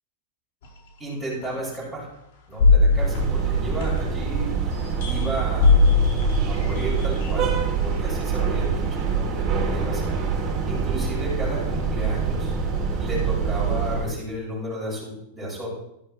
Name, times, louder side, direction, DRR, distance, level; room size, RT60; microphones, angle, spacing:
sound 1, 0.6-0.7 1.4-1.5 2.6-4.3 4.7-7.8 8.6-8.7, left 3 dB, 65° left, 4.9 m, -20 dB
voice 1, 1.0-2.1 2.5-4.5 5.1-5.8 6.5-7.5 7.8-10.3 10.7-12.5 13.0-15.8, right 1 dB, 5° left, -7 dB, 5.6 m, -32 dB
sound 2, 2.9-14.1, right 5 dB, 25° right, 2.9 m, -25 dB
13.0 x 13.0 x 3.2 m, 0.80 s
supercardioid pair, 165°, 0 cm